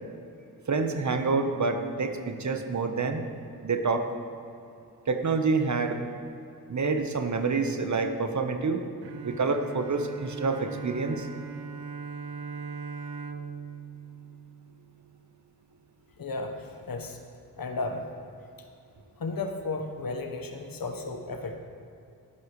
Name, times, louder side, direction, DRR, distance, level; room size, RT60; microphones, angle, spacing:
voice 1, 0.7-3.2 3.6-4.0 5.1-6.0 6.7-8.8 9.2-11.3, right 4 dB, 45° right, 6 dB, 1.3 m, -27 dB
Bowed string instrument, 9.0-15.2, right 5 dB, 75° right, 0.7 m, -40 dB
voice 2, 16.2-16.6 16.9-17.2 17.6-18.0 19.2-21.5, left 3 dB, 60° left, 4 dB, 1.4 m, -33 dB
18.5 x 8.6 x 3.3 m, 2.6 s
supercardioid pair, 40°, 40 cm